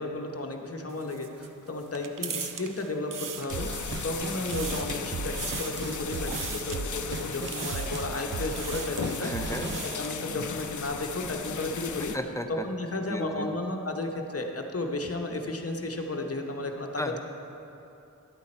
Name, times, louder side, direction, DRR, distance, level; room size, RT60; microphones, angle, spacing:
voice 1, 0.0-9.5 10.0-12.1 12.5-17.2, left 2 dB, 50° left, 3 dB, 0.9 m, -33 dB
sound 1, 0.9-4.0 4.3-5.0 5.3-5.9 6.3-6.8 7.5-8.1 8.5-9.1 9.5-10.2, right 7 dB, 85° right, 0.5 m, -39 dB
sound 2, 3.5-12.2, left 6 dB, 70° left, 0.5 m, -36 dB
sound 3, 3.5-9.9, right 4 dB, 40° right, 0.4 m, -37 dB
voice 2, 9.2-9.8 12.1-12.7 13.1-13.5 17.0-17.2, left 1 dB, 10° left, 5 dB, 0.6 m, -34 dB
11.0 x 8.4 x 4.3 m, 2.9 s
wide cardioid pair, 65°, 31 cm